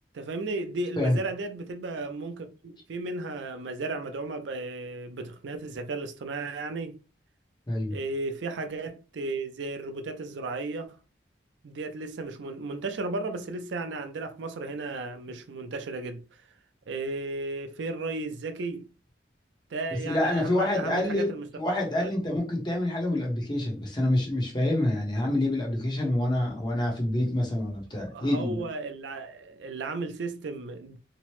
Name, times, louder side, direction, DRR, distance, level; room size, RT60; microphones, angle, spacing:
voice 1, 0.1-7.0 7.9-11.0 11.6-16.4 16.9-18.9 19.7-21.5 22.0-22.1 28.1-31.0, right 3 dB, 80° right, 0.4 m, -34 dB
voice 2, 7.7-8.0 19.9-28.6, left 1 dB, 25° left, 0.7 m, -27 dB
2.9 x 2.0 x 3.0 m
head